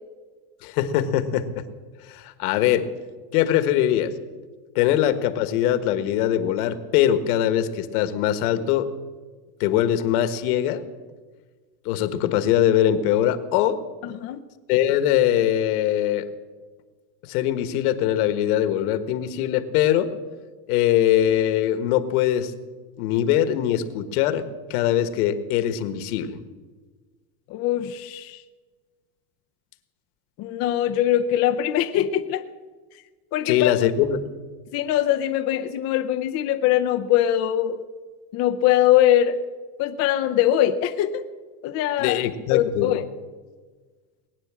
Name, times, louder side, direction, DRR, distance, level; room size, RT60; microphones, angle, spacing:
voice 1, 0.6-1.6 2.1-2.9 3.3-4.1 4.7-8.9 9.6-10.8 11.8-13.8 14.7-16.3 17.3-20.1 20.7-22.5 23.0-26.4 33.5-34.2 42.0-42.9, left 11 dB, 65° left, 11 dB, 1.5 m, -22 dB
voice 2, 14.0-14.4 27.5-28.4 30.4-32.4 33.3-33.7 34.7-37.8 38.3-39.4 39.8-41.2 41.6-42.2 42.5-43.0, left 12 dB, 35° left, 5 dB, 0.6 m, -22 dB
20.5 x 9.5 x 7.4 m, 1.4 s
supercardioid pair, 160°, 48 cm